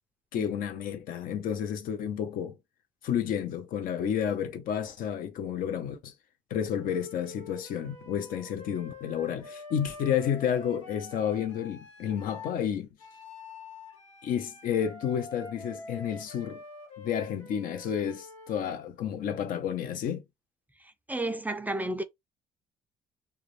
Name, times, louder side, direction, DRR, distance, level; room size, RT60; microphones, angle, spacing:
voice 1, 0.3-2.6 3.0-6.1 6.5-12.9 14.2-16.6 17.0-20.2, left 8 dB, 65° left, 0.6 m, -31 dB
Wind instrument woodwind instrument, 6.7-12.6 13.0-18.6, left 3 dB, 90° left, 0.9 m, -46 dB
voice 2, 21.1-22.0, right 2 dB, 10° right, 0.4 m, -31 dB
2.4 x 2.1 x 3.1 m
hypercardioid pair, 60°, 16 cm